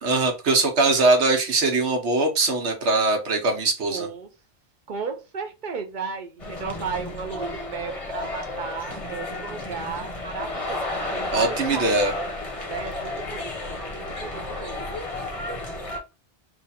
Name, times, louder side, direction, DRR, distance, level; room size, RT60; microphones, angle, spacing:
voice 1, 0.0-4.1 11.3-12.1, right 3 dB, 85° right, 4 dB, 1.3 m, -21 dB
voice 2, 3.9-4.3 4.9-10.9 11.1-15.0, right 5 dB, 50° right, 4 dB, 0.8 m, -34 dB
sound 1, 6.4-16.0, left 2 dB, 35° left, 0.8 m, -32 dB
3.3 x 2.5 x 4.1 m, 0.28 s
omnidirectional pair, 1.1 m